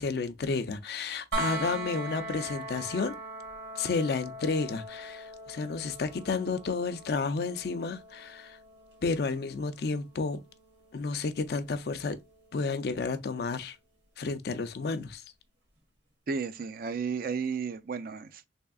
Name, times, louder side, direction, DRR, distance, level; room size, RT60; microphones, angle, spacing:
voice 1, 0.0-3.2 3.8-8.6 9.0-10.4 10.9-12.2 12.5-13.8 14.2-15.2, left 4 dB, 60° left, 0.4 m, -31 dB
sound 1, 1.3-13.1 15.1-15.2, right 2 dB, 75° right, 1.5 m, -41 dB
voice 2, 16.3-18.5, right 5 dB, 55° right, 0.4 m, -33 dB
3.5 x 3.4 x 2.3 m
head